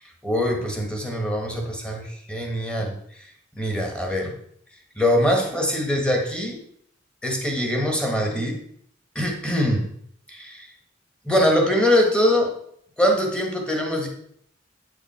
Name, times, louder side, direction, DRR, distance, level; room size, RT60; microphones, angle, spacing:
voice 1, 0.2-3.3 3.6-4.3 5.0-6.6 7.2-8.6 9.1-9.9 10.3-10.7 11.2-12.5 13.0-14.1, left 1 dB, 5° left, 1 dB, 1.5 m, -23 dB
9.0 x 5.0 x 4.5 m, 0.67 s
head